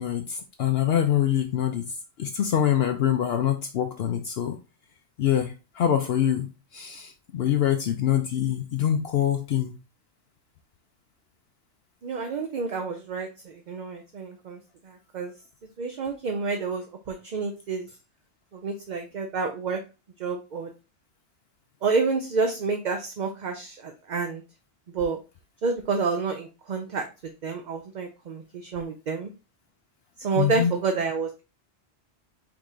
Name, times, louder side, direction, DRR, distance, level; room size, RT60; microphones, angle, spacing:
voice 1, 0.0-1.9 2.2-4.6 5.2-9.8 30.4-30.7, left 10 dB, 70° left, 5 dB, 0.8 m, -25 dB
voice 2, 12.0-14.6 14.8-15.3 15.8-17.9 18.5-19.8 20.2-20.7 21.8-24.4 24.9-25.2 25.6-27.1 27.4-29.3 30.2-31.4, right 4 dB, 50° right, 5 dB, 0.6 m, -29 dB
4.8 x 2.8 x 3.6 m, 0.30 s
omnidirectional pair, 1.1 m